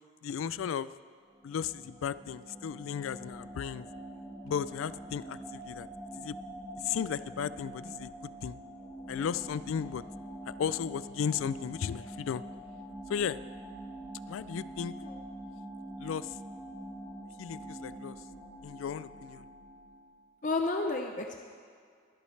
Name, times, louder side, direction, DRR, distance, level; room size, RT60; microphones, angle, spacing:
voice 1, 0.2-0.9 1.4-3.9 4.4-5.9 6.2-6.4 6.8-8.1 8.4-8.6 9.1-10.0 10.5-12.4 13.1-13.4 14.3-14.9 16.0-16.3 17.4-18.2 18.6-19.5, left 7 dB, 85° left, 16 dB, 0.3 m, -35 dB
sound 1, 1.3-20.2, right 1 dB, 10° left, 2.0 m, -45 dB
voice 2, 20.4-21.4, left 3 dB, 40° left, 3 dB, 0.6 m, -31 dB
21.5 x 8.3 x 3.3 m, 2.1 s
head